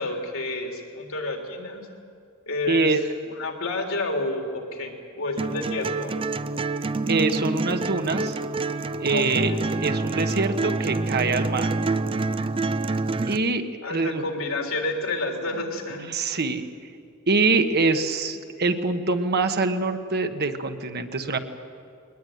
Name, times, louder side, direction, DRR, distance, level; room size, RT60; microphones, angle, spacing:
voice 1, 0.0-1.9 2.5-3.0 3.3-6.2 9.1-9.6 13.8-16.1, left 2 dB, 70° left, 3 dB, 3.5 m, -30 dB
voice 2, 2.7-3.0 7.1-8.4 9.0-9.5 9.8-11.7 13.3-13.6 13.9-14.2 16.1-16.6 17.3-21.4, right 3 dB, 50° right, 7 dB, 1.4 m, -24 dB
sound 1, 5.4-13.4, right 3 dB, 25° right, 0.5 m, -27 dB
22.0 x 19.5 x 9.4 m, 2.4 s
head